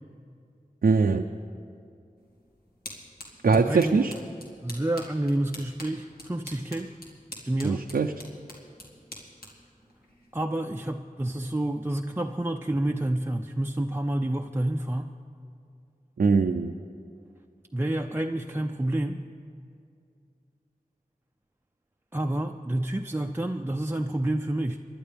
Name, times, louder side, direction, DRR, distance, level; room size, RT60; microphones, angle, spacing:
voice 1, 0.8-1.3 3.4-4.1 7.6-8.1 16.2-16.7, right 4 dB, 85° right, 4 dB, 0.5 m, -22 dB
sound 1, 2.2-10.9, left 1 dB, 85° left, 2.1 m, -47 dB
voice 2, 3.4-4.0 4.6-6.9 7.5-7.8 10.3-15.1 17.7-19.2 22.1-24.8, right 1 dB, 15° right, 3 dB, 0.5 m, -29 dB
24.5 x 11.5 x 3.4 m, 2.5 s
wide cardioid pair, 45°, 15 cm